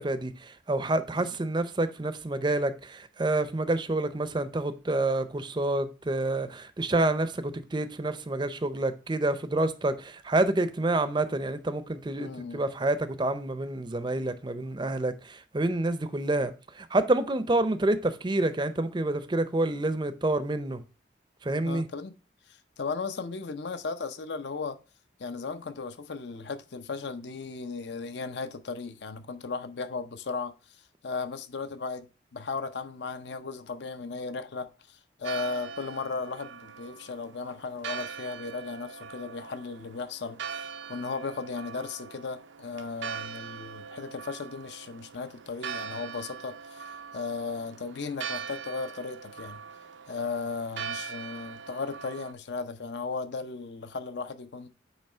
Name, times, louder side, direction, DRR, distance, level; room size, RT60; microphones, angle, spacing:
voice 1, 0.0-20.8 21.4-21.9, right 2 dB, 25° right, 0.5 m, -28 dB
voice 2, 12.2-12.6 21.6-22.2 22.5-24.8 25.2-30.8 31.0-40.6 40.9-49.6 50.1-54.7, left 4 dB, 65° left, 0.6 m, -36 dB
Church bell, 35.2-52.3, right 7 dB, 75° right, 0.5 m, -41 dB
8.9 x 3.1 x 4.3 m
head